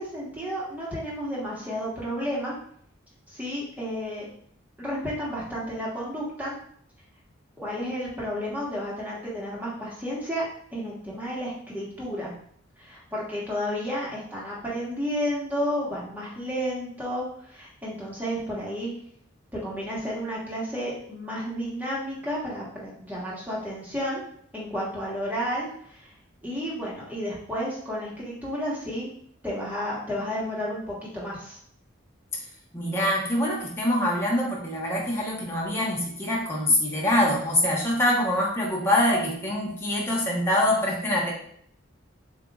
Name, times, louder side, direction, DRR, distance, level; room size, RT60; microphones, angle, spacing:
voice 1, 0.0-2.5 3.3-4.3 4.8-6.5 7.6-10.4 10.7-12.3 12.8-18.9 19.5-24.2 24.5-26.1 26.4-29.1 29.4-31.6, equal, 10° right, -6 dB, 1.4 m, -32 dB
voice 2, 32.7-41.3, left 1 dB, 10° left, -4 dB, 1.0 m, -24 dB
7.4 x 2.8 x 2.4 m, 0.65 s
head